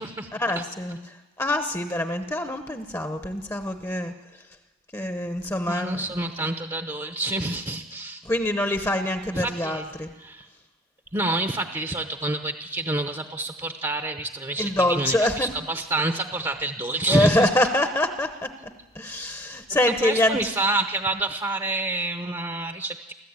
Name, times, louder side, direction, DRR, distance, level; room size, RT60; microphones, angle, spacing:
voice 1, 0.4-4.1 4.9-6.0 8.2-10.1 14.6-15.5 17.1-18.5 18.9-20.4, left 1 dB, 15° left, 7 dB, 0.8 m, -25 dB
voice 2, 5.7-8.2 9.3-9.9 10.2-10.5 11.1-17.5 20.0-23.1, right 2 dB, 15° right, 6 dB, 0.8 m, -28 dB
24.5 x 14.5 x 8.8 m, 1.2 s
head